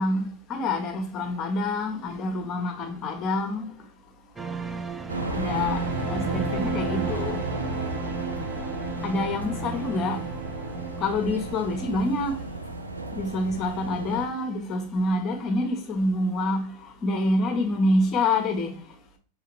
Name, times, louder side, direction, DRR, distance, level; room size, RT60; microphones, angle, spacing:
voice 1, 0.0-3.7 5.2-7.5 9.0-10.2 11.0-12.5 13.1-18.8, left 2 dB, 30° left, 1.1 m, -27 dB
sound 1, 4.4-13.5 13.8-13.9, right 4 dB, 15° right, 0.6 m, -34 dB
sound 2, 5.1-14.3, right 1 dB, 85° right, 0.5 m, -34 dB
4.8 x 3.4 x 3.2 m
figure-of-eight pair, 90°, 0 cm